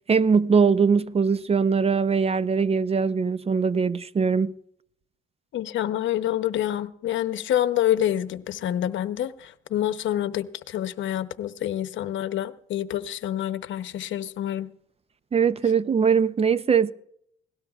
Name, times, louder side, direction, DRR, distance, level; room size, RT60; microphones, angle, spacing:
voice 1, 0.1-4.5 15.3-16.9, right 5 dB, 30° right, 0.5 m, -21 dB
voice 2, 5.5-14.7, left 12 dB, 75° left, 0.8 m, -27 dB
20.5 x 17.5 x 2.4 m
cardioid pair, 90°, 20 cm